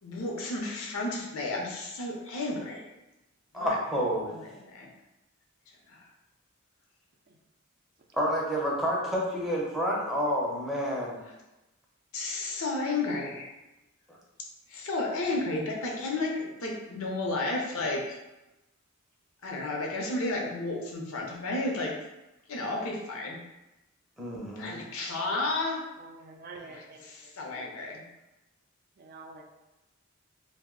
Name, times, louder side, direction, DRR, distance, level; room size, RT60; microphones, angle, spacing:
voice 1, 0.0-2.8 3.5-3.8 4.2-4.9 5.9-6.0 12.1-13.5 14.7-18.2 19.4-22.0 22.5-23.4 24.6-25.8 26.5-28.0, left 2 dB, 75° left, -1 dB, 0.6 m, -32 dB
voice 2, 3.5-4.3 8.1-11.2 14.1-14.2 24.2-24.7, equal, ahead, -4 dB, 0.6 m, -29 dB
voice 3, 26.0-27.0 27.5-27.8 29.0-29.4, right 3 dB, 45° right, 2 dB, 0.4 m, -47 dB
2.6 x 2.0 x 3.7 m, 1.0 s
head